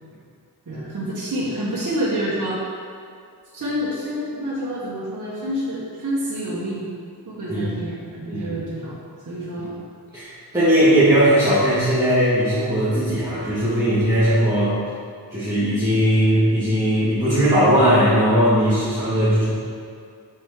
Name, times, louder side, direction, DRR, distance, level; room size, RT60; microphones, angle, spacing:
voice 1, 0.7-2.6 3.5-7.0 7.3-9.0 9.3-9.7, equal, 50° right, -8 dB, 1.2 m, -28 dB
voice 2, 10.1-14.8 15.3-19.4, equal, 10° right, -13 dB, 1.6 m, -18 dB
5.9 x 5.8 x 3.7 m, 2.3 s
wide cardioid pair, 120°, 39 cm